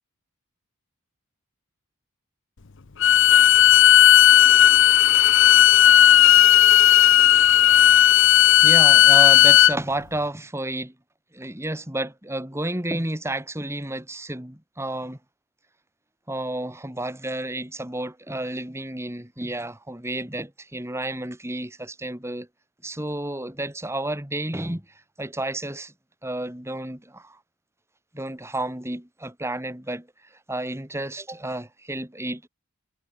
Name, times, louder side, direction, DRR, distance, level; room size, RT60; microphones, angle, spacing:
Bowed string instrument, 3.0-9.7, left 12 dB, 55° left, 0.7 m, -14 dB
voice 1, 8.6-10.9 11.3-15.2 16.3-22.5 22.8-24.8 25.2-25.9 26.2-27.4 28.1-30.1 30.5-32.5, right 1 dB, 10° right, 2.5 m, -31 dB
head